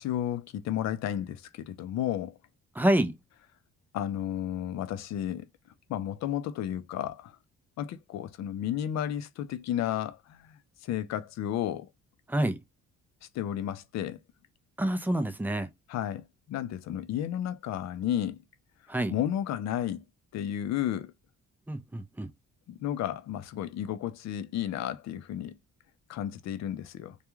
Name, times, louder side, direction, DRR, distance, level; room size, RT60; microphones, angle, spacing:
voice 1, 0.0-2.4 3.9-5.5 5.9-7.4 7.8-11.9 13.3-14.2 15.9-18.4 19.1-20.0 20.3-21.1 22.7-25.6 26.1-27.2, left 11 dB, 65° left, 0.5 m, -32 dB
voice 2, 2.7-3.2 12.3-12.6 14.8-15.7 18.9-19.1 21.7-22.3, right 1 dB, 5° right, 0.4 m, -27 dB
2.3 x 2.2 x 3.0 m
cardioid pair, 90°, 30 cm